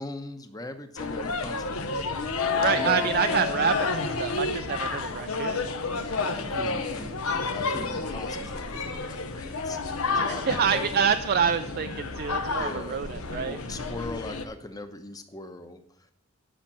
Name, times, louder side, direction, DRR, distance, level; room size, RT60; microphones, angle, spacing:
voice 1, 0.0-2.1 2.6-3.1 6.3-9.8 10.1-11.1 12.5-13.1 13.4-16.1, left 2 dB, 15° left, 8 dB, 1.0 m, -40 dB
sound 1, 1.0-14.4, left 3 dB, 75° left, 1.2 m, -30 dB
Keyboard (musical), 2.4-4.9, left 9 dB, 55° left, 1.6 m, -33 dB
voice 2, 2.6-5.7 10.3-13.6, right 6 dB, 45° right, 8 dB, 0.4 m, -27 dB
10.5 x 5.9 x 8.6 m, 0.70 s
head